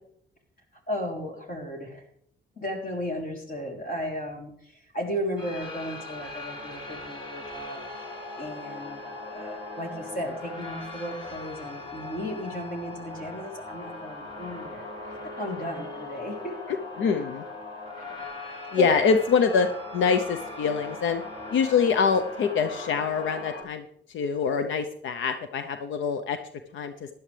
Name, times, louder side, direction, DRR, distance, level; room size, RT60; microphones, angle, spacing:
voice 1, 0.9-2.1 2.6-16.6 18.0-18.1 18.4-18.9, equal, 45° left, 1 dB, 3.5 m, -35 dB
sound 1, 5.4-23.6, left 2 dB, 25° left, 3.3 m, -39 dB
voice 2, 17.0-17.4 18.7-19.7 19.9-21.2 21.5-23.8 24.1-26.4 26.7-26.9, left 6 dB, 75° left, 9 dB, 0.8 m, -24 dB
16.0 x 11.0 x 3.4 m, 0.66 s
cardioid pair, 90°, 20 cm